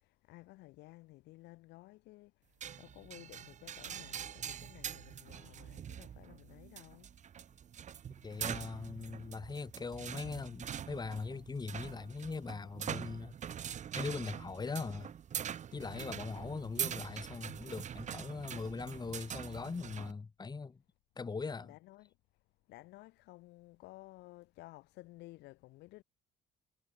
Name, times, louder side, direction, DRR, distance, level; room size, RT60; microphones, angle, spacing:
voice 1, 0.3-2.3 2.8-7.1 21.6-22.0 22.7-26.0, left 19 dB, 85° left, 6.0 m, -55 dB
sound 1, 2.6-20.1, right 9 dB, 45° right, 1.7 m, -44 dB
voice 2, 8.2-13.3 14.0-15.1 15.7-20.8 21.2-21.7, left 4 dB, 25° left, 3.4 m, -41 dB
cardioid pair, 110°, 17 cm